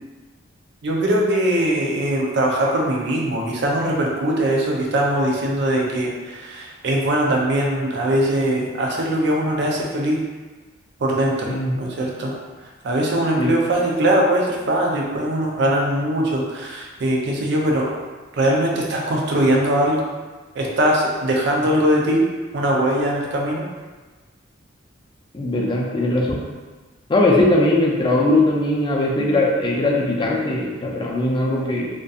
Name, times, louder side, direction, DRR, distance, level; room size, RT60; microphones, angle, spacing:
voice 1, 0.8-10.2 11.0-12.3 12.8-17.9 18.3-20.0 20.6-22.3 22.5-23.7, right 1 dB, 65° right, -2 dB, 0.5 m, -21 dB
voice 2, 25.3-26.4 27.1-31.9, left 2 dB, 25° left, -2 dB, 0.4 m, -20 dB
2.6 x 2.2 x 2.4 m, 1.3 s
head